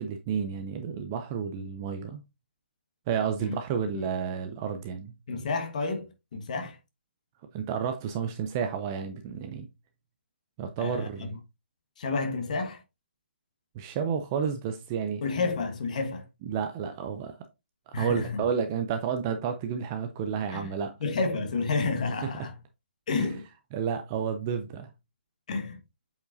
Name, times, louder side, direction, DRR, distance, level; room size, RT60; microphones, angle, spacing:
voice 1, 0.0-2.2 3.1-5.1 7.5-9.7 10.6-11.4 13.8-15.2 16.4-17.4 17.9-20.9 23.2-23.3 23.7-24.9, right 7 dB, 15° right, 0.4 m, -31 dB
voice 2, 5.3-6.8 10.8-11.4 12.0-12.8 15.2-16.3 17.9-18.4 20.5-20.7 21.0-22.6 23.1-23.4 25.5-25.8, left 4 dB, 35° left, 1.4 m, -30 dB
8.0 x 5.0 x 2.6 m
hypercardioid pair, 170°, 7 cm